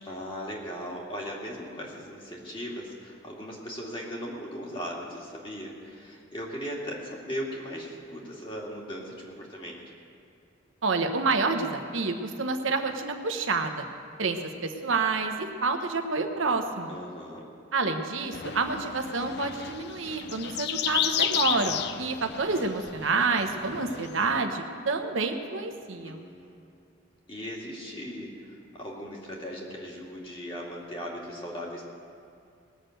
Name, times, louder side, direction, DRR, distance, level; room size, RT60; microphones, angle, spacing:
voice 1, 0.0-9.8 16.9-17.4 26.0-26.6 27.3-31.9, equal, 25° left, -3 dB, 2.3 m, -38 dB
voice 2, 10.8-13.9 14.2-16.9 17.7-26.3, right 3 dB, 85° right, 5 dB, 1.0 m, -28 dB
sound 1, 18.3-24.4, left 9 dB, 55° left, 0.5 m, -32 dB
19.5 x 6.6 x 7.8 m, 2.4 s
head